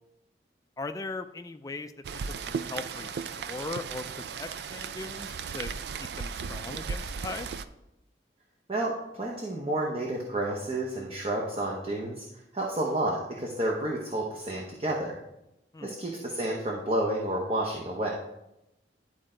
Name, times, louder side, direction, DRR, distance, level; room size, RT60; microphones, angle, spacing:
voice 1, 0.8-1.9 2.3-5.7 6.0-7.6 15.7-15.9, left 3 dB, 20° left, 8 dB, 0.4 m, -39 dB
Rain, 2.0-7.6, right 5 dB, 65° right, 0.4 m, -36 dB
voice 2, 8.7-12.2 12.5-15.1 15.8-18.1, right 1 dB, 35° right, -2 dB, 0.9 m, -30 dB
11.0 x 4.4 x 3.8 m, 0.88 s
head